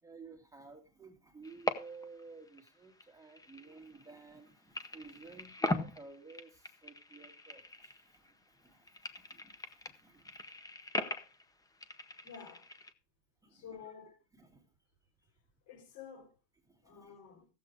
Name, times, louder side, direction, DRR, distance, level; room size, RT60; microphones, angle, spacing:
voice 1, 0.0-10.5 13.4-14.7 15.2-15.3 16.7-17.2, right 4 dB, 5° right, 1.8 m, -54 dB
sound 1, 1.4-2.2 2.5-4.4 4.7-8.3 8.6-12.9, left 2 dB, 10° left, 0.7 m, -40 dB
voice 2, 12.2-12.7 13.5-14.1 15.7-16.4 16.8-17.5, left 7 dB, 50° left, 4.4 m, -50 dB
15.0 x 7.7 x 4.8 m
cardioid pair, 165°, 44 cm